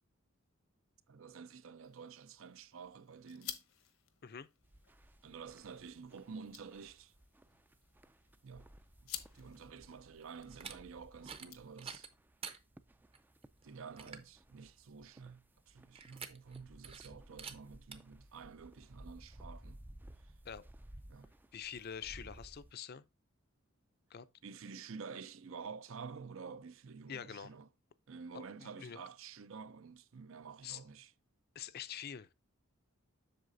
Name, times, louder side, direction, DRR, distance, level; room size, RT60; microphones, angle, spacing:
voice 1, 1.1-3.6 5.2-7.1 8.4-8.7 9.3-12.1 13.6-19.8 21.1-21.3 24.4-27.7 28.1-31.1, right 5 dB, 70° right, 0.5 m, -50 dB
sound 1, 1.8-12.2, left 11 dB, 75° left, 1.0 m, -53 dB
sound 2, 4.6-22.7, right 1 dB, 10° right, 0.3 m, -58 dB
sound 3, 10.5-10.8 11.2-11.5 11.8-12.6 13.1-13.2 13.6-13.7 14.0-14.3 16.0-16.6 16.8-17.1 17.4-17.6 17.9-18.0, right 6 dB, 25° right, 0.7 m, -47 dB
voice 2, 21.5-23.0 24.1-24.3 27.1-27.5 28.8-29.0 30.6-30.8 31.5-32.3, left 8 dB, 45° left, 0.5 m, -45 dB
7.9 x 6.5 x 2.6 m
head